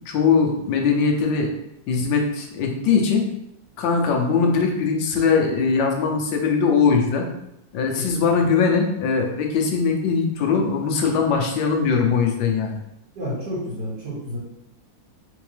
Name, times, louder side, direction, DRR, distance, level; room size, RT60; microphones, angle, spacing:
voice 1, 0.1-1.5 1.9-3.2 3.8-7.3 7.7-12.8, left 5 dB, 80° left, 2 dB, 1.4 m, -21 dB
voice 2, 13.2-14.4, equal, 60° right, -7 dB, 2.3 m, -30 dB
4.4 x 3.5 x 3.3 m, 0.82 s
omnidirectional pair, 2.0 m